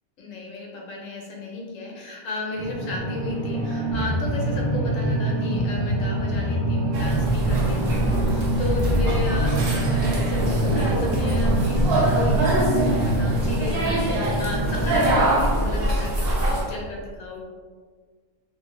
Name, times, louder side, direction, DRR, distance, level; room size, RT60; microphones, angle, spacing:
voice 1, 0.2-17.4, left 2 dB, 85° left, -2 dB, 1.1 m, -34 dB
sound 1, 2.6-15.2, right 1 dB, 30° right, 0.5 m, -28 dB
Bass guitar, 3.9-13.5, right 2 dB, 35° left, 0.7 m, -27 dB
sound 2, 6.9-16.6, right 1 dB, 60° right, 0.8 m, -24 dB
2.9 x 2.4 x 3.0 m, 1.6 s
omnidirectional pair, 1.3 m